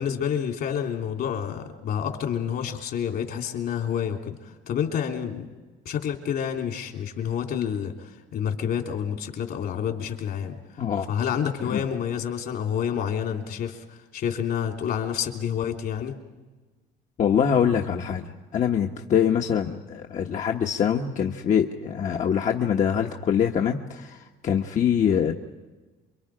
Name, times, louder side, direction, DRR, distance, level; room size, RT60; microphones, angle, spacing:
voice 1, 0.0-5.5 5.8-10.6 11.1-16.2, left 8 dB, 65° left, 3 dB, 3.2 m, -29 dB
voice 2, 10.8-11.1 11.6-11.8 17.2-25.3, left 8 dB, 45° left, 2 dB, 1.2 m, -24 dB
28.0 x 23.0 x 5.0 m, 1.3 s
cardioid pair, 110°, 17 cm